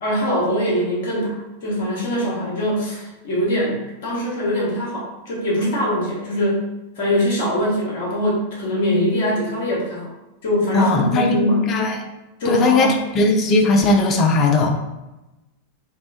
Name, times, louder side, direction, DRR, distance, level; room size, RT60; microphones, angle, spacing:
voice 1, 0.0-6.7 7.0-10.1 10.4-11.7 12.4-13.0, equal, 55° left, -4 dB, 1.0 m, -22 dB
voice 2, 10.7-12.0 12.5-14.7, left 2 dB, 30° left, 2 dB, 0.4 m, -18 dB
3.0 x 2.0 x 2.4 m, 1.0 s
figure-of-eight pair, 90°, 0 cm